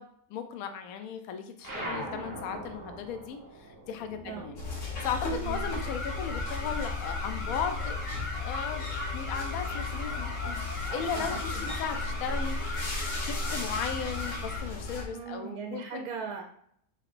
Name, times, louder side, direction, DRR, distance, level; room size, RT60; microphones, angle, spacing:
voice 1, 0.0-4.6 5.0-8.0 8.3-10.6 10.9-12.6 13.2-16.1, left 7 dB, 75° left, 7 dB, 1.0 m, -36 dB
sound 1, 1.6-6.5 6.8-8.2, right 1 dB, 20° right, 0.5 m, -42 dB
sound 2, 4.6-15.1, left 3 dB, 55° left, 1.3 m, -35 dB
sound 3, 5.4-14.6, left 2 dB, 35° left, 1.0 m, -39 dB
voice 2, 15.1-16.5, right 7 dB, 80° right, 3 dB, 1.1 m, -39 dB
4.7 x 3.4 x 2.5 m, 0.67 s
omnidirectional pair, 1.6 m